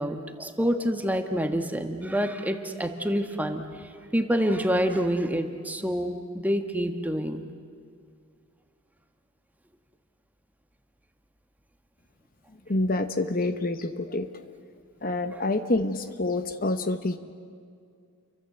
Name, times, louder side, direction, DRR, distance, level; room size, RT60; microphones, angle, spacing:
voice 1, 0.0-3.6 4.1-7.4, equal, 5° right, 6 dB, 1.5 m, -27 dB
voice 2, 12.7-14.3 15.0-17.2, left 2 dB, 40° left, 10 dB, 1.1 m, -27 dB
30.0 x 24.0 x 8.0 m, 2.3 s
head